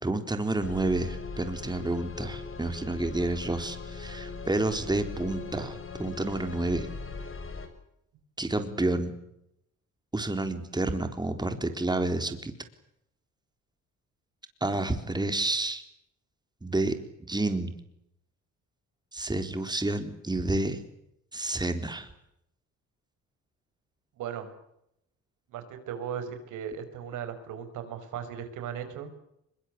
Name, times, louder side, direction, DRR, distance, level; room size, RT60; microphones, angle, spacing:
voice 1, 0.0-6.9 8.4-9.2 10.1-12.5 14.6-15.8 16.6-16.9 17.2-17.7 19.1-20.8 21.3-22.1, right 2 dB, 15° right, 7 dB, 4.0 m, -29 dB
sound 1, 0.6-7.7, left 4 dB, 45° left, 6.5 m, -40 dB
voice 2, 24.2-24.5 25.5-29.1, right 8 dB, 85° right, 8 dB, 5.6 m, -37 dB
24.5 x 22.5 x 8.6 m, 0.79 s
cardioid pair, 90°, 30 cm